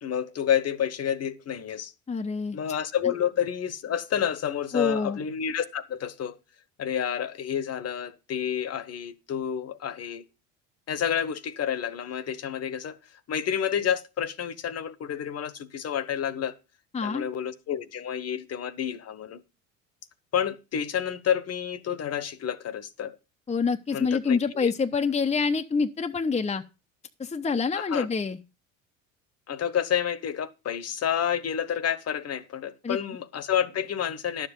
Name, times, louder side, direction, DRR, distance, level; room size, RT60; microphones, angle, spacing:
voice 1, 0.0-1.9 2.5-6.4 6.8-10.2 10.9-13.0 13.3-16.6 17.0-19.4 20.3-23.2 23.9-24.7 27.7-28.1 29.5-34.5, left 9 dB, 40° left, 1.3 m, -29 dB
voice 2, 2.1-2.6 4.7-5.2 16.9-17.2 23.5-26.6 27.2-28.4 32.8-33.0, left 5 dB, 15° left, 0.9 m, -26 dB
11.5 x 7.6 x 5.4 m
hypercardioid pair, 75°, 39 cm